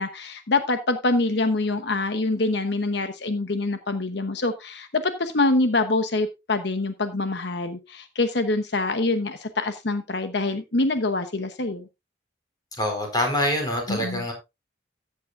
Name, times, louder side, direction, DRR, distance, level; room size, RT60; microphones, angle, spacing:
voice 1, 0.0-11.9 13.9-14.3, left 2 dB, 65° left, 9 dB, 0.9 m, -25 dB
voice 2, 12.8-14.3, left 1 dB, 20° left, 2 dB, 4.2 m, -25 dB
14.5 x 8.5 x 2.5 m, 0.24 s
head